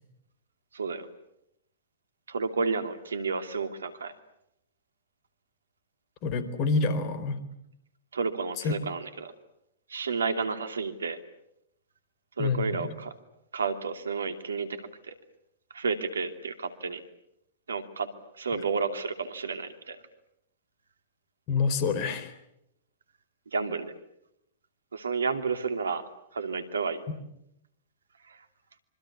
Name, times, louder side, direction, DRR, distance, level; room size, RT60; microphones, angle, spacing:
voice 1, 0.7-1.1 2.3-4.1 8.1-9.3 9.9-11.2 12.4-13.1 13.5-15.1 15.7-17.0 17.7-18.1 18.4-20.0 23.5-23.9 24.9-26.0 26.3-27.0 28.3-28.4, right 5 dB, 75° right, 9 dB, 2.7 m, -31 dB
voice 2, 6.2-7.4 8.6-8.7 12.4-12.9 21.5-22.3, left 4 dB, 40° left, 12 dB, 4.2 m, -27 dB
26.5 x 25.0 x 8.5 m, 0.80 s
figure-of-eight pair, 105°, 0 cm